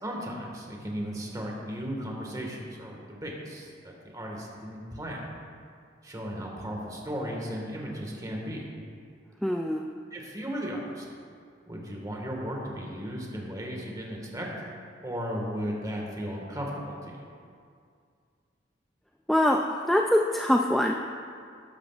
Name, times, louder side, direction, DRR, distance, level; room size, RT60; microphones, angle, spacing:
voice 1, 0.0-5.3 6.0-8.7 10.1-11.1 11.7-14.5 15.0-17.2, equal, 20° right, -1 dB, 1.6 m, -35 dB
voice 2, 9.4-9.9 19.3-20.9, left 1 dB, ahead, 1 dB, 0.3 m, -24 dB
12.0 x 11.5 x 2.4 m, 2.2 s
head